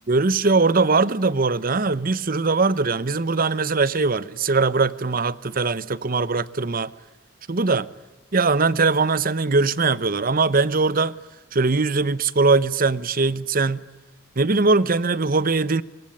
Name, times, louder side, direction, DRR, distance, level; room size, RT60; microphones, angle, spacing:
voice 1, 0.1-6.9 7.5-7.9 8.3-11.2 11.5-13.9 14.4-15.8, right 3 dB, 45° right, 0.9 m, -21 dB
26.5 x 24.0 x 9.2 m
head